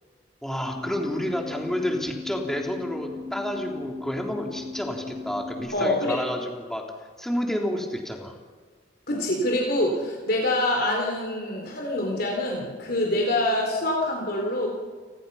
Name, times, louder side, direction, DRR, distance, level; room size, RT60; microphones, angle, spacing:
voice 1, 0.4-6.8 7.2-8.3, equal, 5° left, 0 dB, 3.4 m, -30 dB
sound 1, 0.6-5.6, left 3 dB, 40° right, 5.5 m, -37 dB
voice 2, 5.7-6.2 9.1-14.7, left 1 dB, 60° left, -1 dB, 4.1 m, -25 dB
29.5 x 20.5 x 5.7 m, 1.5 s
head